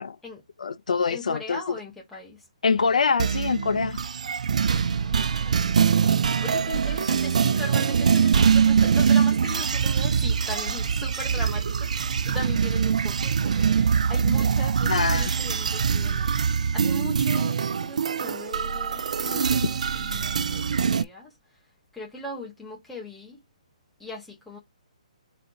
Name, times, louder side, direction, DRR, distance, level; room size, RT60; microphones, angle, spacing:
voice 1, 0.6-1.8 2.6-4.0 14.9-15.3, left 5 dB, 85° left, 0.6 m, -24 dB
voice 2, 1.1-2.4 4.9-5.9 6.2-21.3 21.9-23.4 24.0-24.6, left 2 dB, 5° left, 1.2 m, -39 dB
sound 1, 3.2-21.0, right 6 dB, 75° right, 0.3 m, -23 dB
4.1 x 3.8 x 2.8 m
hypercardioid pair, 170°, 4 cm